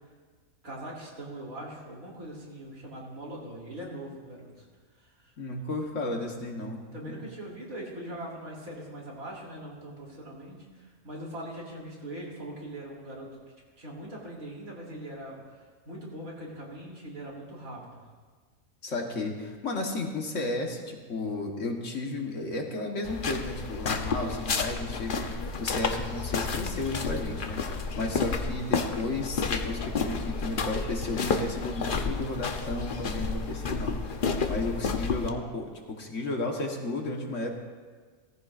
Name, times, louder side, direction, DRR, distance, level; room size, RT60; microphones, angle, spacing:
voice 1, 0.6-4.7 5.0-5.3 6.9-13.3 13.8-18.0, right 1 dB, 80° right, -4 dB, 3.5 m, -41 dB
voice 2, 5.4-7.2 18.8-34.0 34.5-37.5, left 2 dB, 60° left, 1 dB, 1.7 m, -33 dB
sound 1, 23.0-35.3, left 4 dB, 45° left, 0.8 m, -31 dB
17.5 x 14.5 x 2.5 m, 1.5 s
omnidirectional pair, 1.5 m